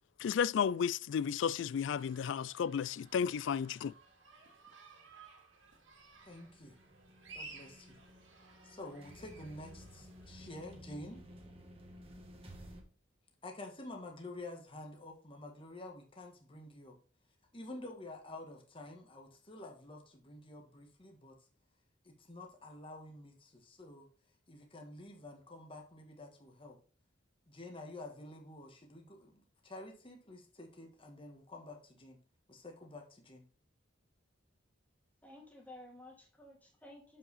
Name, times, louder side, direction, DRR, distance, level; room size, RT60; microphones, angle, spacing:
voice 1, 0.2-3.9, left 7 dB, 65° left, 0.3 m, -33 dB
sound 1, 2.0-10.7, right 3 dB, 80° right, 2.2 m, -57 dB
sound 2, 5.8-12.8, equal, 30° right, 1.5 m, -54 dB
voice 2, 6.2-6.8 7.3-8.0 8.6-11.2 13.4-17.0 17.5-21.4 22.0-24.1 24.5-26.8 27.5-32.2 32.5-33.4, left 2 dB, 30° left, 1.5 m, -49 dB
voice 3, 35.2-37.2, left 1 dB, 10° left, 2.0 m, -54 dB
7.4 x 5.6 x 4.1 m
head